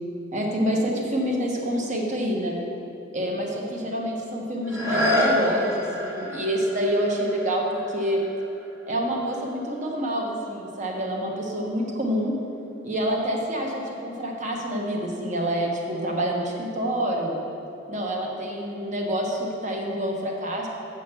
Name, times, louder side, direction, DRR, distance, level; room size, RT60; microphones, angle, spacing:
voice 1, 0.3-2.6 3.1-8.2 8.9-12.3 12.8-17.4 17.9-20.7, equal, 35° right, 0 dB, 1.1 m, -27 dB
sound 1, 4.6-10.3 10.9-11.0, left 1 dB, 15° right, 1.0 m, -29 dB
8.1 x 5.2 x 6.8 m, 2.9 s
head